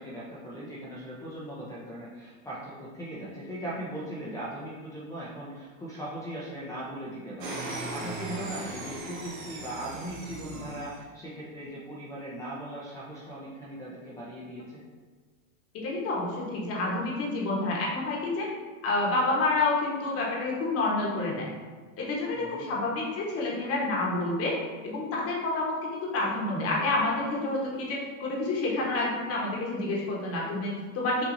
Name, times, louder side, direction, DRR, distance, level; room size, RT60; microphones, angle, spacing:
voice 1, 0.0-14.8 22.3-22.7, right 1 dB, 10° left, -8 dB, 0.6 m, -39 dB
sound 1, 7.4-11.0, right 2 dB, 70° right, 1.2 m, -38 dB
voice 2, 15.7-18.5 18.8-21.5 22.0-24.6 24.8-31.2, left 2 dB, 35° left, -3 dB, 1.2 m, -29 dB
5.9 x 2.7 x 2.6 m, 1.4 s
hypercardioid pair, 120°, 42 cm